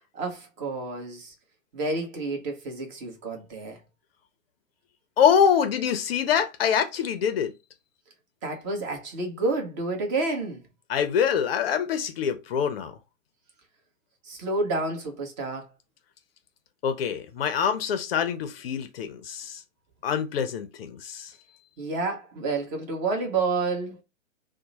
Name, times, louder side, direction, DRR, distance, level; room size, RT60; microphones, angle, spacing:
voice 1, 0.1-1.3 1.7-3.8 8.4-10.6 14.2-15.7 21.8-24.0, right 3 dB, 35° right, 1.2 m, -29 dB
voice 2, 5.2-7.5 10.9-12.9 16.8-19.6 20.0-21.3, left 8 dB, 45° left, 0.6 m, -25 dB
2.9 x 2.1 x 4.0 m
hypercardioid pair, 130°, 41 cm